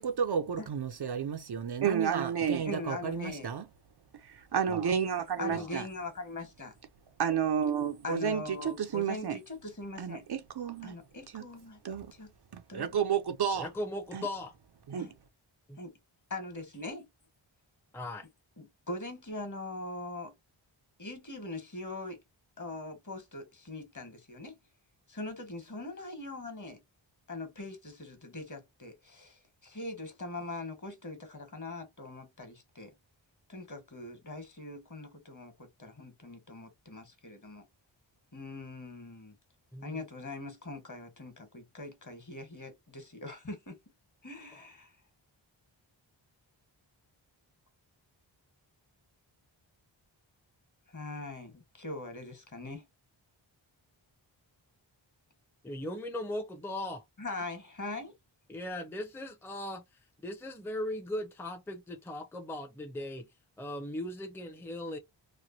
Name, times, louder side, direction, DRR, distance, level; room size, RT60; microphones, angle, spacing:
voice 1, 0.0-3.6 4.5-5.8 7.2-9.4 10.0-10.9 11.3-11.4 11.8-12.1 12.7-13.7 14.1-14.2 14.9-15.1, right 7 dB, 55° right, 0.6 m, -31 dB
voice 2, 2.6-3.5 5.4-6.7 8.0-10.2 10.8-11.8 12.1-12.3 12.7-13.0 15.0-15.1 15.8-16.0 16.3-17.1 18.6-20.3 21.0-22.2 22.6-24.6 25.1-26.8 27.3-32.9 33.5-37.6 38.3-39.4 39.8-43.8 44.2-44.9 50.9-52.8 57.2-58.1, left 2 dB, 40° left, 1.4 m, -42 dB
voice 3, 13.5-14.5 15.7-15.8 17.9-18.3 39.7-40.1 44.5-44.7 55.6-57.0 58.5-59.8 60.2-63.3 63.6-65.0, left 1 dB, 5° left, 0.7 m, -38 dB
3.0 x 2.2 x 2.6 m
cardioid pair, 55°, 48 cm